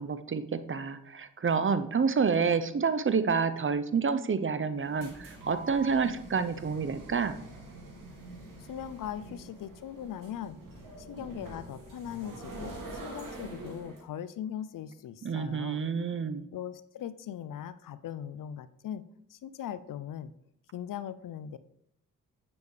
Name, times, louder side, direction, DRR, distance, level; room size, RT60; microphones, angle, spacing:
voice 1, 0.0-7.4 15.2-16.5, right 5 dB, 35° right, 12 dB, 0.8 m, -28 dB
sound 1, 4.7-14.0, right 2 dB, 60° right, 2.6 m, -45 dB
voice 2, 8.6-10.6 11.0-12.8 13.0-15.8 16.5-19.0 19.3-20.3 20.7-21.6, left 10 dB, 60° left, 15 dB, 0.6 m, -39 dB
9.4 x 7.1 x 3.3 m, 0.76 s
hypercardioid pair, 45°, 36 cm